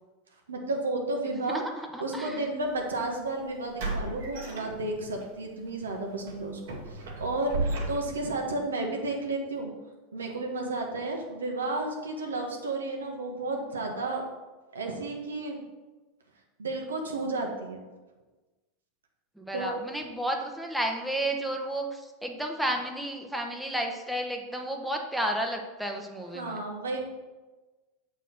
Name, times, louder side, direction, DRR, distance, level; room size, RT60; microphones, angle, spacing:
voice 1, 0.5-1.6 2.0-6.6 7.2-9.7 10.1-14.2 14.7-15.6 16.6-17.8 19.5-19.8 26.3-27.0, right 2 dB, 90° right, 1 dB, 1.3 m, -32 dB
voice 2, 1.3-2.5 19.4-26.6, right 1 dB, ahead, 2 dB, 1.1 m, -32 dB
sound 1, 2.7-2.8 3.8-5.2 5.6-5.8 6.3-8.4, right 2 dB, 70° right, 1.9 m, -34 dB
7.0 x 4.4 x 5.9 m, 1.2 s
hypercardioid pair, 95°, 0 cm